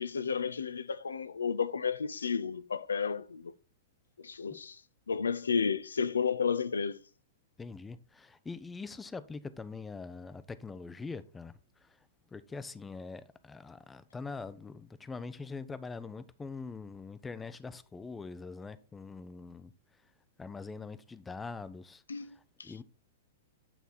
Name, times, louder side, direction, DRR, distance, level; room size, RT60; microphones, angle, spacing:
voice 1, 0.0-3.5 4.2-4.8 5.1-7.0 22.1-22.7, left 6 dB, 80° left, 0.4 m, -32 dB
voice 2, 7.6-12.0 12.3-19.7 20.4-22.8, left 4 dB, 10° left, 0.5 m, -43 dB
8.4 x 3.4 x 4.1 m
hypercardioid pair, 110°, 0 cm